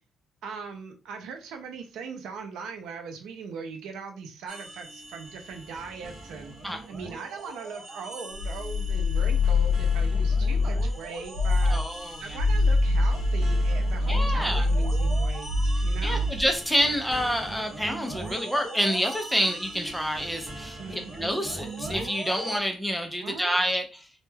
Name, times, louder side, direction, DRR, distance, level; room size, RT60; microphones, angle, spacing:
voice 1, 0.4-6.6 6.9-11.8 12.2-16.3 20.8-21.1 23.2-23.6, right 5 dB, 75° right, 5 dB, 0.5 m, -40 dB
sound 1, 4.5-22.6, right 2 dB, 40° right, 0.7 m, -40 dB
sound 2, 8.3-11.0 11.3-11.8 12.3-16.5, left 2 dB, 80° left, 0.5 m, -24 dB
voice 2, 11.7-12.4 14.1-14.7 16.0-24.0, equal, ahead, 4 dB, 0.3 m, -28 dB
2.2 x 2.0 x 3.2 m, 0.32 s
cardioid pair, 175°, 0 cm